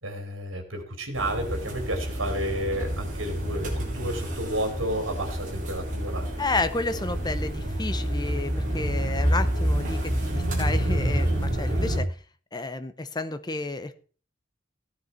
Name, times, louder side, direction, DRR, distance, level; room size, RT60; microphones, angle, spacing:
voice 1, 0.0-6.3, right 1 dB, 70° right, 5 dB, 3.5 m, -31 dB
sound 1, 1.1-12.0, equal, 40° right, 4.5 m, -28 dB
voice 2, 6.4-12.1 12.5-13.9, left 3 dB, 20° left, 10 dB, 0.8 m, -31 dB
15.0 x 9.7 x 4.4 m, 0.41 s
head